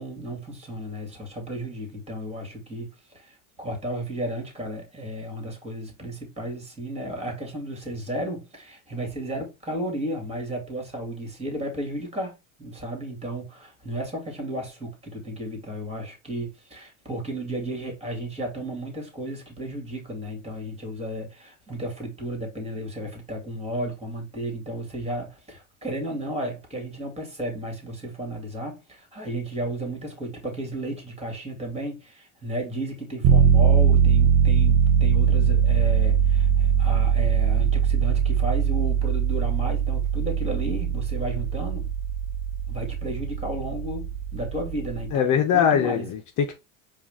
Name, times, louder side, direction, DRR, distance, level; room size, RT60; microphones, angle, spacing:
voice 1, 0.0-41.9 42.7-46.1, right 1 dB, 15° right, 2.3 m, -33 dB
sound 1, 33.2-45.1, right 7 dB, 50° right, 0.8 m, -21 dB
voice 2, 45.1-46.5, left 8 dB, 50° left, 0.9 m, -22 dB
4.7 x 2.6 x 3.7 m
supercardioid pair, 90°, 40 cm